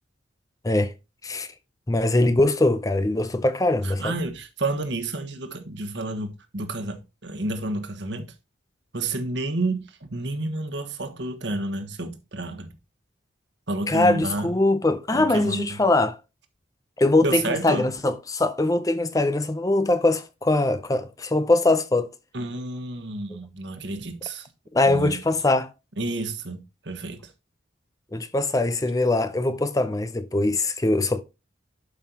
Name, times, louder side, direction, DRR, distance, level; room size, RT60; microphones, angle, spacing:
voice 1, 1.9-4.2 13.9-16.2 17.0-22.1 24.7-25.7 28.1-31.2, left 2 dB, 20° left, 0.5 m, -22 dB
voice 2, 3.8-8.3 8.9-12.7 13.7-14.5 15.1-15.8 17.2-17.9 22.3-24.5 24.8-25.2 26.0-27.3, right 2 dB, 70° right, 1.3 m, -30 dB
11.5 x 5.5 x 2.9 m
head